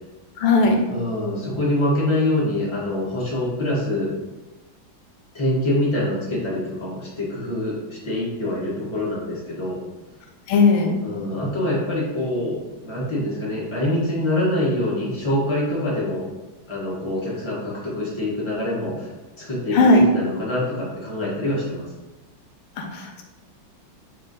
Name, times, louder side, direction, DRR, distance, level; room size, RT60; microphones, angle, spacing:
voice 1, 0.4-0.8 10.5-11.0 19.7-20.0 22.8-23.2, left 3 dB, 85° left, 3 dB, 1.6 m, -17 dB
voice 2, 0.9-4.1 5.3-9.8 11.0-16.3 16.7-19.1 19.4-21.9, left 1 dB, 30° left, -6 dB, 0.5 m, -25 dB
4.4 x 2.7 x 3.8 m, 1.1 s
omnidirectional pair, 2.3 m